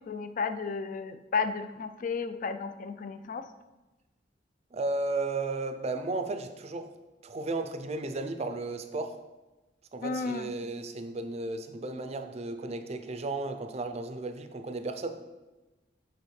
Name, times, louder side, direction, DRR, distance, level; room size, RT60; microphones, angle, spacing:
voice 1, 0.0-3.5 10.0-10.5, left 5 dB, 45° left, 10 dB, 0.4 m, -33 dB
voice 2, 4.7-6.9 7.2-9.2 9.9-15.1, right 2 dB, 35° right, 8 dB, 0.4 m, -34 dB
8.2 x 4.2 x 3.2 m, 1.1 s
head